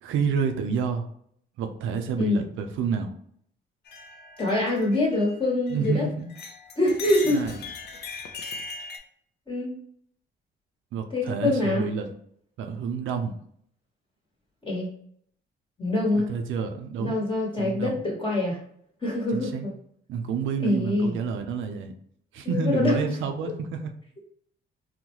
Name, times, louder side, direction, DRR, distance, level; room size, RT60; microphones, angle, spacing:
voice 1, 0.0-1.1 1.6-3.1 5.7-6.3 7.2-7.6 10.9-12.1 12.6-13.4 16.1-17.1 17.6-18.0 19.3-19.7 20.1-21.9 22.3-23.9, right 6 dB, 80° right, 6 dB, 0.5 m, -29 dB
sound 1, 3.9-6.0 6.3-9.0, left 4 dB, 55° left, 0.6 m, -39 dB
voice 2, 4.4-6.0 6.8-7.5 9.5-9.7 11.1-11.9 14.6-14.9 15.8-16.3 17.0-18.6 19.0-19.5 20.6-21.1 22.4-22.9, left 2 dB, 25° left, -3 dB, 1.1 m, -25 dB
3.8 x 2.1 x 3.0 m, 0.65 s
cardioid pair, 90°, 20 cm